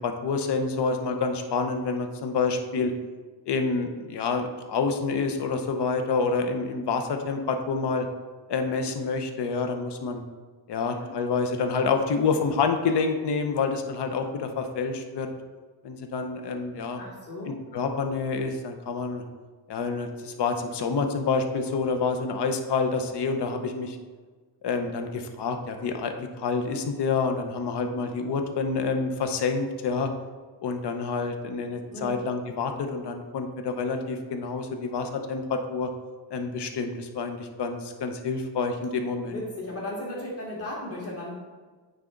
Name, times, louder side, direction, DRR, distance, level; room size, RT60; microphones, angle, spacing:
voice 1, 0.0-2.9 3.5-8.1 8.5-10.2 10.7-15.3 15.8-17.0 17.5-19.2 19.7-24.0 24.6-30.1 30.6-35.9 36.3-39.4, left 4 dB, 65° left, 5 dB, 0.8 m, -28 dB
voice 2, 10.8-11.2 17.0-17.6 31.9-32.2 39.3-41.3, left 1 dB, 30° left, -4 dB, 1.9 m, -36 dB
9.0 x 3.5 x 3.7 m, 1.4 s
cardioid pair, 100°, 44 cm